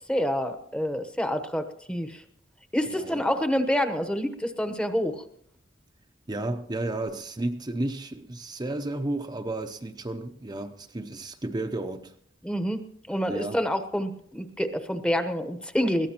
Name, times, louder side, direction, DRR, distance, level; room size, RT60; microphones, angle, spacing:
voice 1, 0.1-2.2 2.7-5.2 12.4-16.1, equal, 5° left, 0.9 m, -27 dB
voice 2, 2.9-3.2 6.3-12.1 13.3-13.6, right 2 dB, 20° right, 0.7 m, -32 dB
21.5 x 16.0 x 2.9 m
head